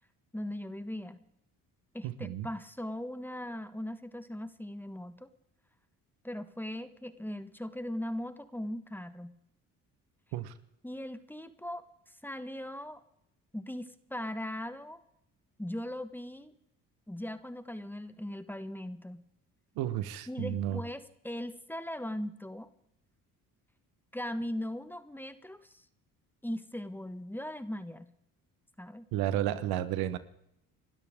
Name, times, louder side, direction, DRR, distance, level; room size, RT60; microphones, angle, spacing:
voice 1, 0.3-1.2 1.9-5.3 6.2-9.3 10.8-13.0 13.5-15.0 15.6-16.5 17.1-19.2 20.3-22.7 24.1-25.8 26.4-28.1 28.8-29.1, left 1 dB, 5° left, 11 dB, 1.4 m, -39 dB
voice 2, 2.0-2.5 10.3-10.5 19.7-20.8 29.1-30.2, right 12 dB, 85° right, 13 dB, 1.3 m, -32 dB
30.0 x 12.5 x 3.7 m, 0.76 s
supercardioid pair, 70°, 36 cm